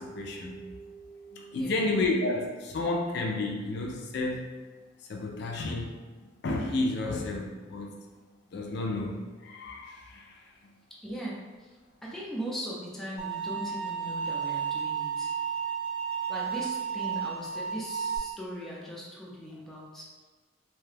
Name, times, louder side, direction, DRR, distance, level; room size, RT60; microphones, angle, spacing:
voice 1, 0.0-4.5 5.0-6.0 6.4-7.9 8.5-10.5, left 2 dB, 60° left, 1 dB, 0.4 m, -32 dB
voice 2, 11.0-15.3 16.3-20.1, equal, ahead, -6 dB, 0.5 m, -39 dB
sound 1, 13.2-18.2, right 7 dB, 20° right, 0.9 m, -32 dB
2.8 x 2.2 x 3.2 m, 1.4 s
head